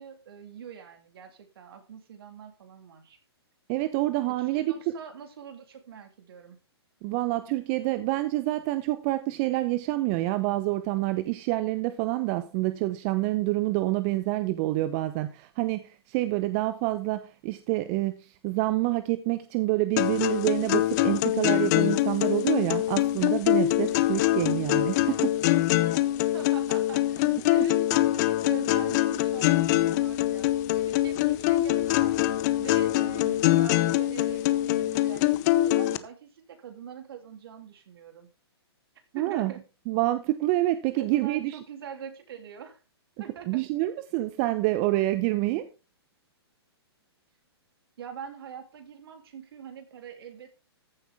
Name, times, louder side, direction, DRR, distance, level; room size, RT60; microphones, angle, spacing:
voice 1, 0.0-3.2 4.4-6.6 26.3-32.2 32.6-38.3 39.1-39.6 41.0-42.8 43.2-43.6 48.0-50.5, right 7 dB, 60° right, 3.2 m, -43 dB
voice 2, 3.7-4.7 7.0-25.3 39.1-39.5 39.9-41.6 43.5-45.7, right 17 dB, 35° right, 0.8 m, -27 dB
sound 1, 20.0-36.0, left 15 dB, 40° left, 0.9 m, -24 dB
14.5 x 8.2 x 3.6 m
hypercardioid pair, 130°, 14 cm